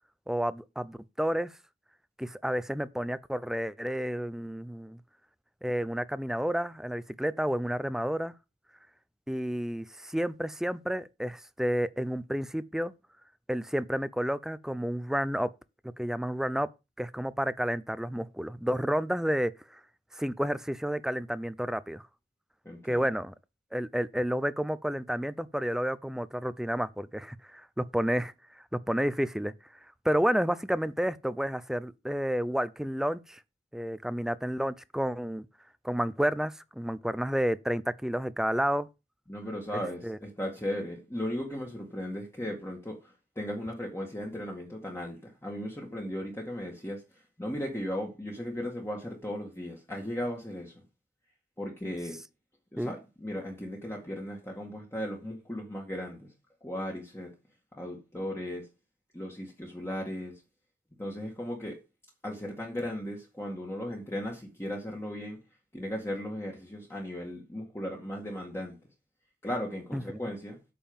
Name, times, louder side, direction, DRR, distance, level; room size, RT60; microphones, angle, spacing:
voice 1, 0.3-1.5 2.2-5.0 5.6-8.3 9.3-12.9 13.5-15.5 16.0-16.7 17.0-19.5 20.1-22.0 22.8-23.3 23.7-28.3 28.7-29.5 30.0-33.4 33.7-35.5 35.8-38.9 40.0-40.2 52.8-52.9 69.9-70.2, equal, 5° right, 0.5 m, -30 dB
voice 2, 22.7-23.0 39.3-47.0 47.4-50.7 51.6-52.2 52.7-56.3 56.6-57.3 57.8-58.7 59.1-60.4 61.0-61.8 62.2-65.4 65.7-68.8 69.4-70.6, equal, 15° left, 2.0 m, -36 dB
8.7 x 5.5 x 7.2 m
head